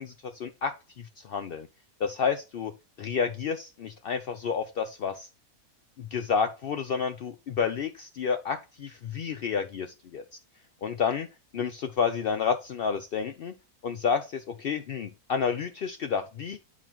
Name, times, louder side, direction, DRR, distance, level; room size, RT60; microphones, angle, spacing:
voice 1, 0.0-1.7 2.0-2.7 3.0-5.3 6.0-10.2 10.8-11.3 11.5-13.5 13.8-16.6, left 6 dB, 80° left, 8 dB, 0.5 m, -30 dB
8.9 x 4.0 x 3.0 m, 0.30 s
omnidirectional pair, 1.6 m